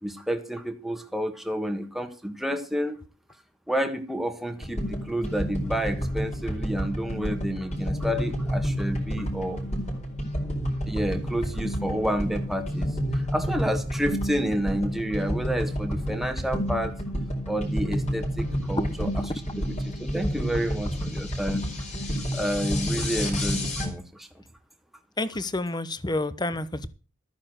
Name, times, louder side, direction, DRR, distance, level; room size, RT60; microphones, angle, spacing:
voice 1, 0.0-3.0 3.7-9.6 10.9-17.0 17.5-19.2 19.6-21.6 22.3-24.3, equal, ahead, 1.6 m, -30 dB
sound 1, 4.6-23.9, equal, 40° left, 4.4 m, -30 dB
voice 2, 25.2-26.9, left 2 dB, 20° left, 1.0 m, -29 dB
13.5 x 9.6 x 6.3 m
head